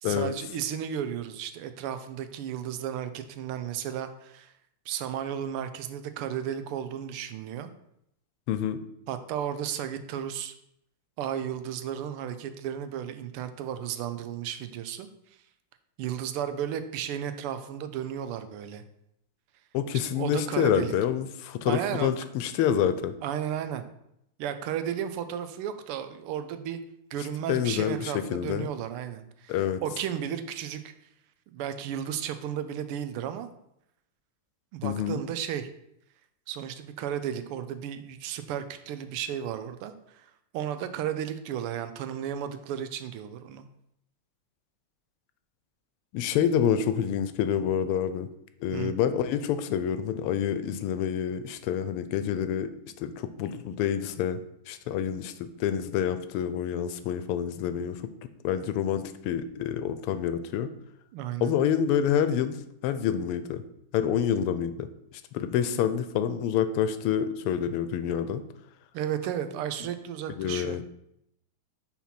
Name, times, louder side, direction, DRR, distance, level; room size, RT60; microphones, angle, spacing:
voice 1, 0.0-4.5 4.9-7.7 9.1-10.5 11.2-15.1 16.0-18.8 20.1-20.9 21.7-22.1 23.2-23.9 24.4-26.8 27.1-30.8 31.5-33.5 34.7-35.7 36.5-40.3 40.5-43.6 48.7-48.9 61.1-61.5 68.9-70.8, right 9 dB, 85° right, 10 dB, 1.6 m, -34 dB
voice 2, 8.5-8.8 19.7-23.1 27.5-28.7 29.5-29.8 34.8-35.2 46.1-48.3 48.6-52.7 53.0-54.4 54.7-58.0 58.4-60.7 61.4-62.6 62.8-63.6 63.9-64.9 65.3-68.4 70.3-70.8, left 9 dB, 90° left, 11 dB, 1.6 m, -27 dB
5.9 x 4.2 x 5.8 m, 0.78 s
omnidirectional pair, 2.4 m